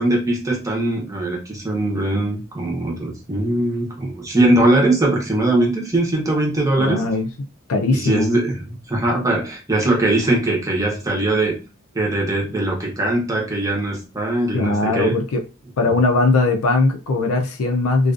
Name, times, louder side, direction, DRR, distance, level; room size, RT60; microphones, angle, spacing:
voice 1, 0.0-7.0 7.9-11.6 11.9-15.2, right 2 dB, 15° right, -2 dB, 0.8 m, -21 dB
voice 2, 6.8-7.3 7.7-8.4 14.5-15.4 15.8-18.1, left 3 dB, 85° left, 3 dB, 0.4 m, -19 dB
2.4 x 2.3 x 2.4 m, 0.30 s
head